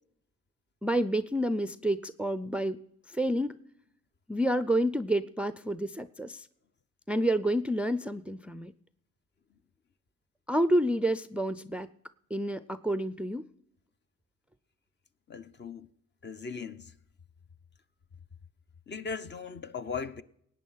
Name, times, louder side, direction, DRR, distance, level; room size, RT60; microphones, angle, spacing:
voice 1, 0.8-2.8 3.1-3.5 4.3-6.5 7.1-8.7 10.5-11.9 12.3-13.4, right 1 dB, 5° right, 0.4 m, -29 dB
voice 2, 15.3-15.9 16.2-16.9 18.9-20.2, left 5 dB, 35° left, 0.8 m, -38 dB
17.5 x 9.2 x 5.7 m
cardioid pair, 90°, 30 cm